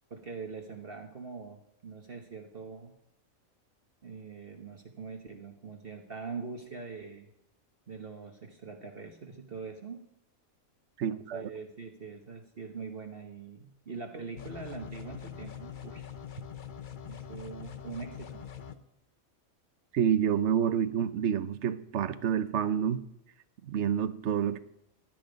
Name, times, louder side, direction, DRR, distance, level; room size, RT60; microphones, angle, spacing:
voice 1, 0.1-2.9 4.0-7.3 7.9-10.1 11.0-16.1 17.1-18.4, right 4 dB, 45° right, 1.3 m, -43 dB
voice 2, 11.0-11.5 19.9-23.0 23.6-24.6, right 8 dB, 60° right, 1.0 m, -28 dB
sound 1, 14.4-18.8, left 9 dB, 45° left, 0.8 m, -43 dB
16.5 x 11.5 x 5.2 m
omnidirectional pair, 1.5 m